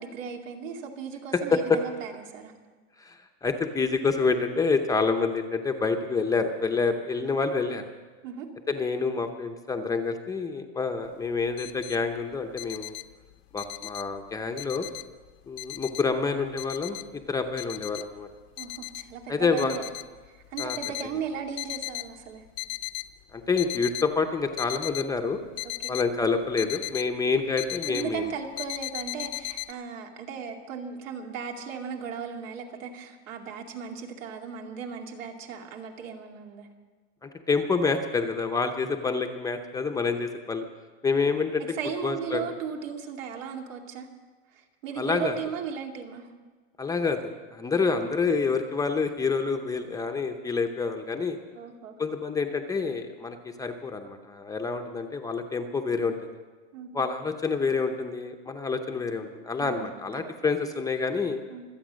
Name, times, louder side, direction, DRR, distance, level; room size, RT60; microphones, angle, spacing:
voice 1, 0.0-2.5 8.2-8.5 18.6-19.8 20.3-22.4 25.6-25.9 27.9-36.7 41.7-44.1 44.5-46.3 51.5-52.0 56.7-57.0 59.6-60.0 61.5-61.6, right 6 dB, 85° right, 2 dB, 2.6 m, -36 dB
voice 2, 1.3-1.8 3.0-7.8 8.7-13.0 13.5-14.9 15.5-18.3 19.3-19.8 20.6-20.8 23.3-25.4 25.9-28.3 37.2-40.7 41.0-41.6 42.0-42.4 45.0-45.3 46.8-51.4 52.0-56.1 56.9-61.4, left 4 dB, 10° left, 5 dB, 0.6 m, -27 dB
sound 1, 11.1-11.2 11.4-12.0 12.3-14.2 14.6-15.3 15.6-17.3 17.6-18.1 18.6-19.1 19.5-21.1 21.5-22.1 22.5-23.1 23.4-24.1 24.6-27.1 27.3-28.2 28.6-29.7, left 21 dB, 55° left, 0.7 m, -36 dB
25.0 x 8.7 x 6.3 m, 1.4 s
supercardioid pair, 155°, 38 cm